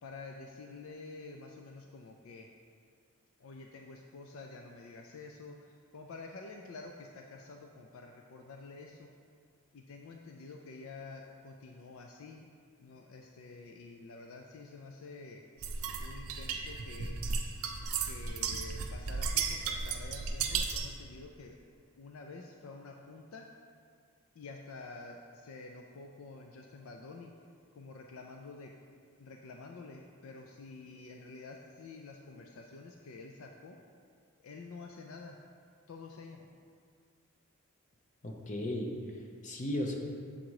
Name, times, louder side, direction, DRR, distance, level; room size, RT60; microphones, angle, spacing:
voice 1, 0.0-2.5 3.4-9.1 9.7-12.4 12.8-15.4 15.9-17.2 18.0-21.6 21.9-23.5 24.3-27.4 27.7-28.7 29.2-33.8 34.4-35.4 35.9-36.5, left 3 dB, 65° left, 2 dB, 0.4 m, -49 dB
sound 1, 15.6-21.0, right 5 dB, 75° right, 0.6 m, -35 dB
voice 2, 38.2-39.9, left 1 dB, 35° left, 1 dB, 0.7 m, -36 dB
7.2 x 3.8 x 4.7 m, 2.1 s
head